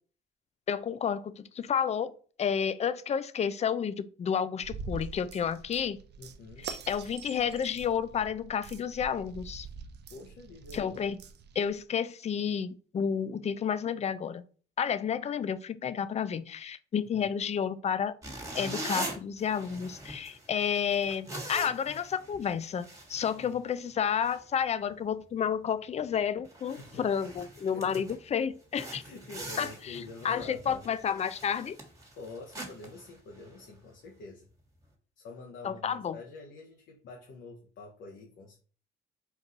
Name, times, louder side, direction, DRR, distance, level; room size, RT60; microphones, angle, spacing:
voice 1, 0.7-2.1 2.4-6.0 6.6-9.7 10.7-11.2 11.6-14.4 14.8-18.2 18.5-29.0 29.6-31.8 35.6-36.2, left 7 dB, 35° left, 0.4 m, -31 dB
sound 1, 4.6-11.8, right 5 dB, 60° right, 0.6 m, -44 dB
voice 2, 6.2-6.7 10.1-11.0 17.1-17.3 23.3-23.6 26.7-27.0 27.7-28.0 29.0-30.9 32.1-34.5 35.2-38.6, left 3 dB, 70° left, 0.9 m, -47 dB
sound 2, 18.2-23.9 24.2-24.4 24.9-25.1 25.5-25.6 26.1-26.2 26.4-28.2 28.7-33.8, right 1 dB, 15° right, 1.5 m, -43 dB
4.5 x 2.6 x 3.8 m
cardioid pair, 90°, 20 cm